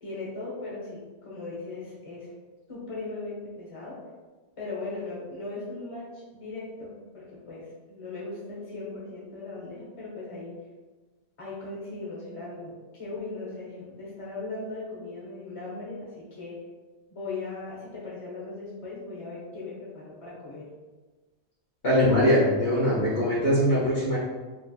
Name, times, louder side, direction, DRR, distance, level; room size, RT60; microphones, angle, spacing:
voice 1, 0.0-2.3 2.7-4.0 4.6-10.6 11.4-16.6 17.1-20.7, left 3 dB, 30° left, -6 dB, 1.2 m, -38 dB
voice 2, 21.8-24.2, equal, 55° left, -12 dB, 1.8 m, -22 dB
5.0 x 3.4 x 2.3 m, 1.3 s
omnidirectional pair, 1.1 m